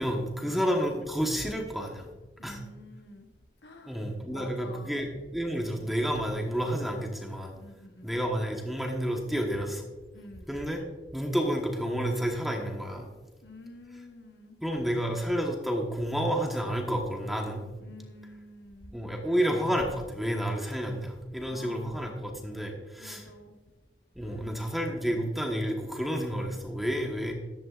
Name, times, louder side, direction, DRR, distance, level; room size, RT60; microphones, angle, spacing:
voice 1, 0.0-2.1 2.4-2.6 3.9-7.5 8.0-9.9 10.5-10.8 11.1-13.1 14.6-17.6 18.9-23.3 24.1-27.3, equal, ahead, 1 dB, 1.2 m, -30 dB
voice 2, 2.4-3.3 3.6-4.0 4.3-5.0 7.5-8.1 10.1-10.5 13.4-14.6 17.8-18.9 21.4-22.1 23.0-23.6 24.2-24.4, left 1 dB, 70° left, 4 dB, 1.2 m, -48 dB
14.5 x 11.0 x 2.5 m, 1.2 s
head